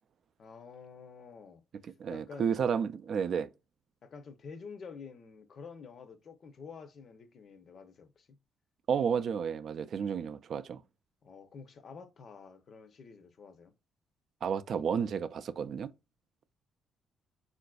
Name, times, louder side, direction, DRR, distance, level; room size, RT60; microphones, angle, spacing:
voice 1, 0.4-2.5 4.0-8.4 11.2-13.7, left 5 dB, 55° left, 0.6 m, -49 dB
voice 2, 2.0-3.5 8.9-10.8 14.4-15.9, right 7 dB, 60° right, 0.3 m, -31 dB
3.8 x 2.5 x 2.2 m
cardioid pair, 90°, 0 cm